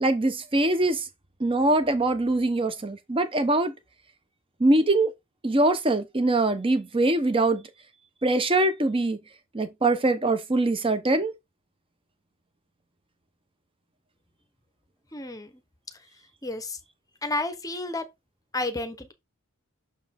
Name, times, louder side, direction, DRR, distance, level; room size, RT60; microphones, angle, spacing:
voice 1, 0.0-1.0 1.4-3.7 4.6-5.1 5.4-7.6 8.2-9.2 9.5-11.3, right 2 dB, 25° right, 0.8 m, -23 dB
voice 2, 15.1-15.5 16.4-16.8 17.2-18.0 18.5-19.1, left 2 dB, 15° left, 0.8 m, -31 dB
6.4 x 4.6 x 3.5 m
head